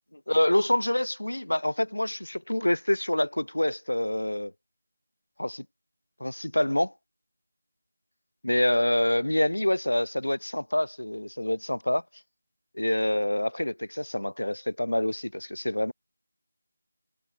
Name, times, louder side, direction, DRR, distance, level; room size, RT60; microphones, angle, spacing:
voice 1, 0.3-4.5 5.4-5.7 6.2-6.9 8.4-12.0 12.8-15.9, left 1 dB, 85° left, 3.5 m, -26 dB
figure-of-eight pair, 165°, 0 cm